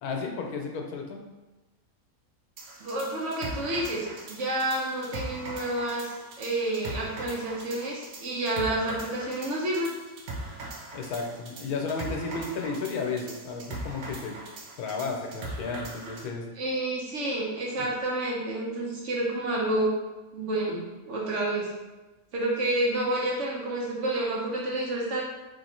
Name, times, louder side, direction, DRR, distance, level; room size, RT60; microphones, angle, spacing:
voice 1, 0.0-1.2 10.9-14.4 14.8-16.5 17.8-17.9, left 4 dB, 80° left, 2 dB, 1.2 m, -33 dB
sound 1, 2.6-16.3, right 2 dB, 80° right, 1.2 m, -40 dB
voice 2, 2.8-9.9 16.6-19.9 20.3-21.7 22.3-25.2, right 1 dB, 60° right, -3 dB, 1.1 m, -29 dB
3.6 x 2.9 x 4.2 m, 1.1 s
omnidirectional pair, 1.6 m